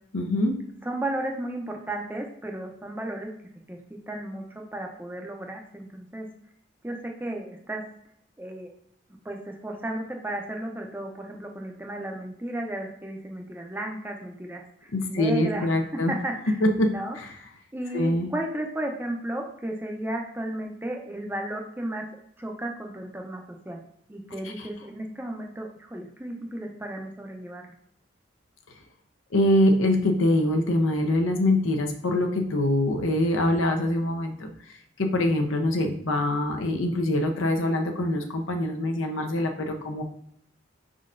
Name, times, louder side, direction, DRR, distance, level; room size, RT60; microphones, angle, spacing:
voice 1, 0.1-0.5 14.9-16.1 16.6-16.9 17.2-17.3 17.9-18.3 24.6-24.7 29.3-34.5 35.0-40.0, left 1 dB, 85° left, 4 dB, 0.7 m, -24 dB
voice 2, 0.8-3.3 3.7-3.8 4.1-6.3 6.8-7.8 8.4-8.7 9.2-16.6 16.9-17.2 17.7-22.1 22.4-23.8 24.1-27.6, right 1 dB, 10° right, 1 dB, 0.5 m, -34 dB
5.5 x 3.8 x 2.5 m, 0.70 s
head